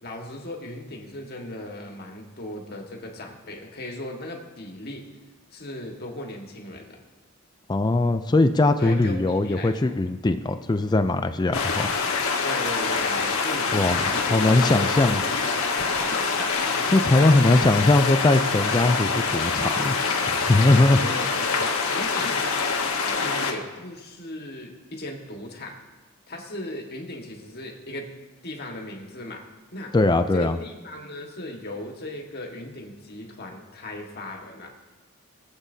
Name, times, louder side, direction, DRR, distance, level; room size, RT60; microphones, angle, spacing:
voice 1, 0.0-5.0 5.5-7.0 8.8-9.9 12.4-15.0 15.8-16.5 17.1-17.9 21.0-22.5 23.0-25.8 26.3-28.1 28.4-29.4 29.7-29.9 30.3-34.7, left 1 dB, 45° left, 1 dB, 1.6 m, -37 dB
voice 2, 7.7-11.9 13.7-15.2 16.9-20.0 20.2-21.1 29.9-30.6, left 2 dB, 20° left, 9 dB, 0.4 m, -20 dB
sound 1, 11.5-23.5, left 4 dB, 75° left, 1.3 m, -25 dB
21.5 x 8.1 x 2.8 m, 1.2 s
head